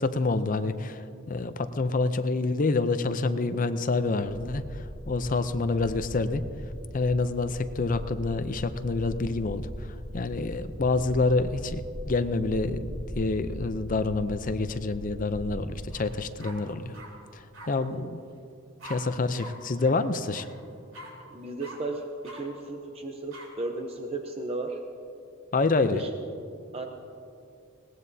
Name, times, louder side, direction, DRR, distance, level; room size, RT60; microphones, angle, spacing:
voice 1, 0.0-6.4 6.9-9.7 10.1-17.0 17.3-18.2 18.8-20.5 25.5-26.0, left 3 dB, 40° left, 11 dB, 0.5 m, -27 dB
sound 1, 4.2-15.8, equal, 10° right, 3.2 m, -40 dB
sound 2, 15.9-16.1 16.4-17.1 17.5-17.7 18.8-19.0 19.4-19.5 19.8-19.9 20.3-20.5 20.9-21.1 21.6-21.8 22.2-22.4 23.3-23.5, right 1 dB, 80° right, 3.8 m, -44 dB
voice 2, 17.8-18.1 21.3-22.0 22.3-24.8 25.7-26.2 26.7-26.9, right 2 dB, 30° right, 3 dB, 0.8 m, -35 dB
21.0 x 18.0 x 2.8 m, 2.6 s
head